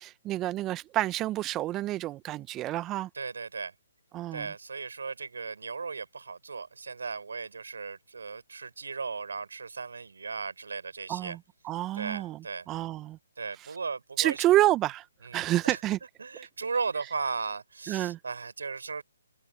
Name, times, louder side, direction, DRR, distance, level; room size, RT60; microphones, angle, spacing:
voice 1, 0.0-3.1 4.1-4.5 11.1-11.4 11.6-12.4 12.7-13.2 14.2-15.0 15.3-16.0 17.9-18.2, right 15 dB, 20° right, 0.8 m, -28 dB
voice 2, 3.1-3.7 4.3-11.4 11.9-12.7 13.4-14.4 15.2-15.8 16.2-19.0, right 4 dB, 75° right, 4.6 m, -36 dB
open air
figure-of-eight pair, 140°, 0 cm